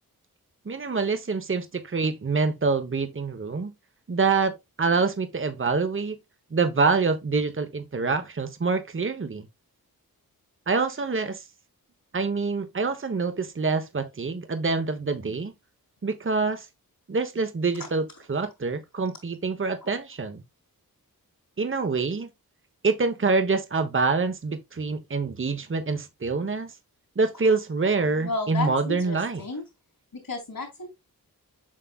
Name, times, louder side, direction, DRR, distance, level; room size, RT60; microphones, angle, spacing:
voice 1, 0.6-3.7 4.1-6.2 6.5-9.5 10.7-11.4 12.1-15.5 16.0-16.7 17.1-20.4 21.6-22.3 22.8-26.7 27.2-29.4, right 4 dB, 35° right, 1.1 m, -26 dB
voice 2, 28.2-29.6 30.3-30.9, left 3 dB, 65° left, 3.2 m, -32 dB
7.6 x 5.6 x 2.4 m
cardioid pair, 65°, 36 cm